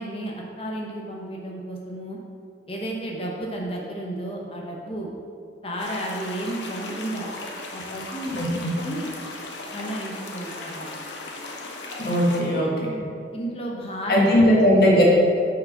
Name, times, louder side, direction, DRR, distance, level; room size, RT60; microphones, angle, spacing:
voice 1, 0.0-2.2 2.7-5.1 5.6-7.3 7.7-9.1 9.7-10.9 12.5-12.7 13.3-14.4, right 1 dB, 30° left, -2 dB, 1.0 m, -32 dB
sound 1, 5.8-12.4, left 2 dB, 85° left, 0.9 m, -37 dB
voice 2, 12.0-12.9 14.1-15.0, equal, 60° left, -3 dB, 1.6 m, -18 dB
6.3 x 4.8 x 5.8 m, 2.3 s
head